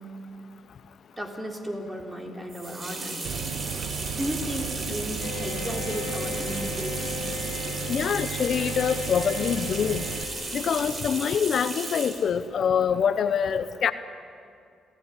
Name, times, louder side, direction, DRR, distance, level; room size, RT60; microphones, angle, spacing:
voice 1, 1.2-3.5 4.1-7.2, equal, 15° right, 2 dB, 3.8 m, -34 dB
sound 1, 2.5-12.3, right 2 dB, 35° right, 4.3 m, -35 dB
sound 2, 3.2-10.2, right 7 dB, 80° right, 1.0 m, -35 dB
Bowed string instrument, 5.2-11.2, left 9 dB, 85° left, 1.2 m, -39 dB
voice 2, 7.9-10.1 10.5-13.9, left 7 dB, 60° left, 12 dB, 0.8 m, -25 dB
27.5 x 17.0 x 10.0 m, 2.4 s
cardioid pair, 90°, 0 cm